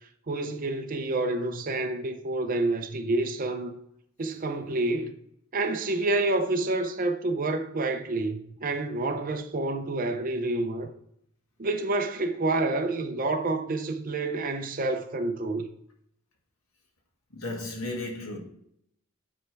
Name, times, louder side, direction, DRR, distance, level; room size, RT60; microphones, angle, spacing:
voice 1, 0.3-3.8 4.2-5.1 5.5-10.9 11.6-15.6, right 2 dB, 40° right, 0.6 m, -28 dB
voice 2, 17.3-18.4, left 2 dB, 80° left, 1.7 m, -34 dB
9.2 x 3.3 x 4.6 m
head